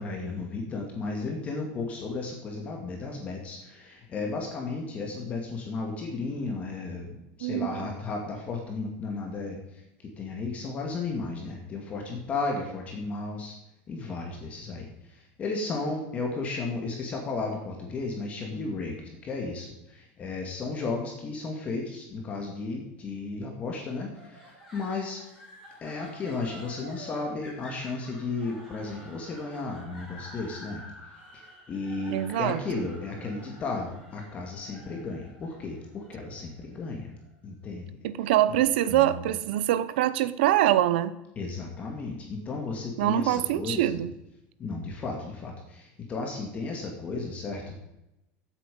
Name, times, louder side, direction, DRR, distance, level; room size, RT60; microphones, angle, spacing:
voice 1, 0.0-13.6 13.9-25.2 25.8-30.8 31.3-37.2 37.4-37.9 38.9-39.2 41.4-44.0 44.6-47.8, left 3 dB, 25° left, 1 dB, 2.2 m, -34 dB
voice 2, 7.4-7.8 32.1-32.9 38.0-41.1 43.0-44.1, right 13 dB, 90° right, 15 dB, 0.9 m, -24 dB
sound 1, 24.1-37.3, equal, ahead, 5.9 m, -49 dB
15.0 x 8.4 x 5.4 m, 0.90 s
cardioid pair, 160°, 5 cm